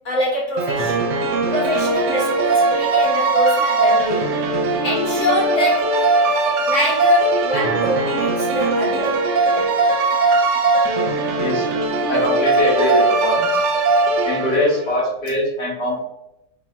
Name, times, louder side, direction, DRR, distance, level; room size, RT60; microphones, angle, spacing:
voice 1, 0.0-1.0 1.3-4.4 4.8-6.0 6.7-9.7, left 1 dB, 50° left, -4 dB, 1.3 m, -24 dB
sound 1, 0.6-14.9, right 3 dB, 80° right, 1.2 m, -19 dB
voice 2, 11.3-11.7 12.1-13.6 14.2-16.0, left 1 dB, 80° left, -7 dB, 2.3 m, -22 dB
4.4 x 2.7 x 2.2 m, 0.86 s
omnidirectional pair, 1.9 m